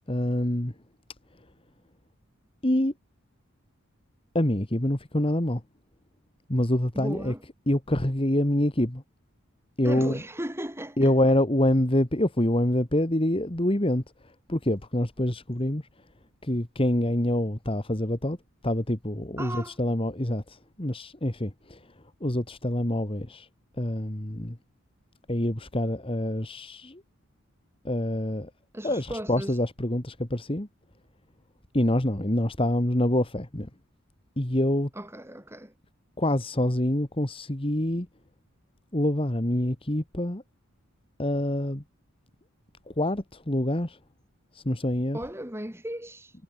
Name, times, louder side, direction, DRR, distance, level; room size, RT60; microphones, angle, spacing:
voice 1, 0.1-0.7 2.6-2.9 4.3-5.6 6.5-7.3 7.7-9.0 9.8-10.2 11.0-15.9 16.4-18.4 18.6-21.9 22.2-23.5 23.8-24.6 25.3-27.0 27.8-28.5 28.8-30.7 31.7-33.7 34.4-34.9 36.2-38.1 38.9-40.4 41.2-41.8 43.0-44.0 44.5-45.2, left 1 dB, 25° left, 1.9 m, -26 dB
voice 2, 6.9-7.4 9.8-11.1 19.4-19.8 28.7-29.6 35.0-35.7 45.1-46.3, right 1 dB, 10° right, 7.9 m, -36 dB
head